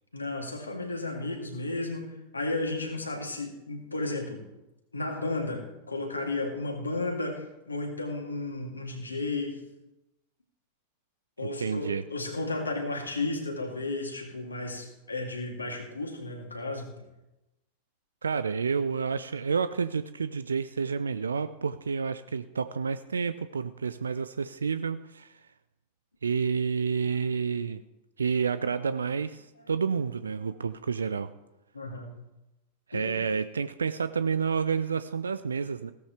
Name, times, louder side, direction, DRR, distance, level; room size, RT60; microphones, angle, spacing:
voice 1, 0.1-4.4 4.9-9.6 11.4-16.9 27.1-27.2 27.5-27.7 31.7-32.1 32.9-33.1, left 2 dB, 80° left, 1 dB, 2.9 m, -33 dB
voice 2, 11.4-12.0 18.2-25.4 26.2-27.8 28.2-31.3 32.9-35.9, right 5 dB, 75° right, 13 dB, 0.5 m, -29 dB
17.0 x 13.5 x 3.4 m, 0.96 s
figure-of-eight pair, 90°, 0 cm